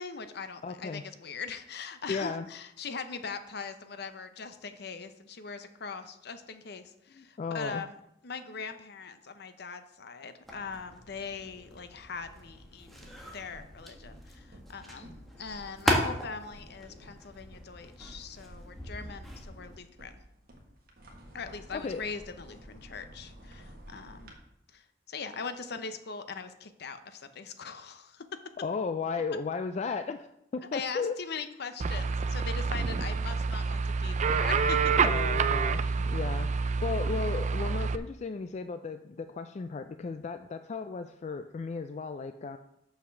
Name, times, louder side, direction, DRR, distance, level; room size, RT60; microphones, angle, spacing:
voice 1, 0.0-7.9 8.2-20.1 21.3-24.3 24.7-28.2 30.7-34.9, left 5 dB, 60° left, 10 dB, 0.7 m, -41 dB
voice 2, 0.6-1.0 2.1-2.5 7.1-7.8 15.0-15.1 21.7-22.1 28.6-30.3 30.5-31.1 35.0-42.6, left 4 dB, 40° left, 9 dB, 0.3 m, -35 dB
sound 1, 10.4-19.8, equal, ahead, 1.4 m, -37 dB
sound 2, 12.2-24.3, equal, 55° right, 1.6 m, -53 dB
sound 3, 31.8-38.0, right 5 dB, 40° right, 0.4 m, -28 dB
6.6 x 5.7 x 6.3 m, 0.80 s
head